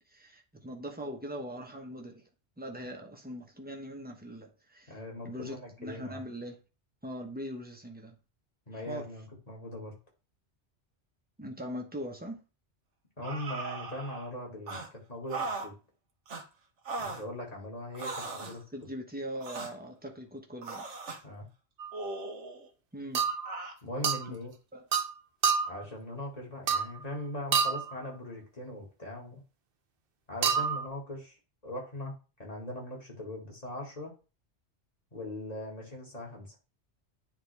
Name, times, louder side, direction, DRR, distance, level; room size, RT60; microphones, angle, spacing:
voice 1, 0.1-2.2 2.6-6.6 7.0-8.2 8.7-9.0 11.4-12.4 18.7-20.9 22.9-23.3 24.3-24.4 24.7-24.9, equal, 10° right, 1.0 m, -41 dB
voice 2, 4.9-6.2 8.7-10.0 13.2-14.8 15.1-15.7 17.0-18.6 21.2-21.5 23.8-24.5 25.7-29.4 30.3-31.4 31.6-32.1 32.4-34.1 35.1-36.6, left 1 dB, 35° left, 2.2 m, -40 dB
sound 1, 13.2-14.3 14.7-14.9 15.3-15.7 16.3-16.4 16.9-17.2 17.9-18.6 19.4-19.7 20.6-21.2 21.9-22.7 23.5-23.8, right 3 dB, 80° right, 1.3 m, -38 dB
sound 2, 21.8-22.0 23.1-23.5 24.0-24.3 24.9-25.1 25.4-25.8 26.7-27.0 27.5-27.9 30.4-30.9, right 6 dB, 55° right, 0.8 m, -28 dB
9.5 x 3.7 x 3.4 m
omnidirectional pair, 1.2 m